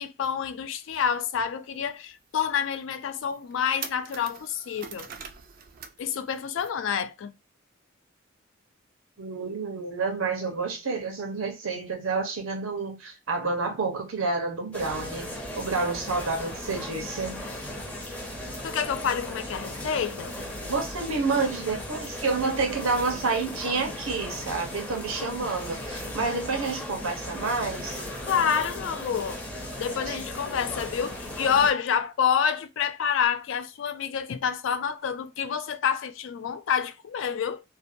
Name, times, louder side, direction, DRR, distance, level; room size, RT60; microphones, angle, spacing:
voice 1, 0.0-5.1 6.0-7.3 18.6-20.3 28.2-29.4 29.8-37.6, left 7 dB, 65° left, 0.3 m, -28 dB
sound 1, 1.7-1.8 2.3-2.4 2.9-3.0 3.3-6.0 6.3-6.7, right 7 dB, 45° right, 0.4 m, -42 dB
voice 2, 9.2-17.4 20.7-28.0 30.1-30.2, right 4 dB, 90° right, 0.9 m, -29 dB
sound 2, 14.7-31.7, left 1 dB, 5° left, 0.5 m, -37 dB
2.6 x 2.2 x 2.5 m
head